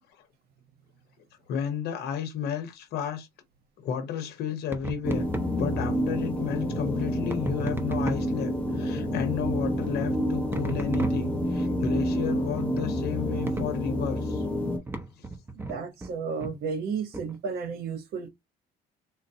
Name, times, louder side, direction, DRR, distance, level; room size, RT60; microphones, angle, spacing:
voice 1, 1.5-3.3 3.8-5.3 5.6-14.5 15.2-15.3, left 8 dB, 75° left, 0.8 m, -32 dB
sound 1, 4.7-5.6 7.3-8.4 10.5-11.6 12.5-12.9 13.5-13.9 14.9-16.1 16.4-16.6 17.1-17.4, right 2 dB, 15° right, 0.7 m, -36 dB
sound 2, 5.0-14.8, equal, 5° left, 1.1 m, -28 dB
voice 2, 15.5-18.3, right 5 dB, 70° right, 0.9 m, -33 dB
3.8 x 2.0 x 2.7 m
cardioid pair, 110°, 17 cm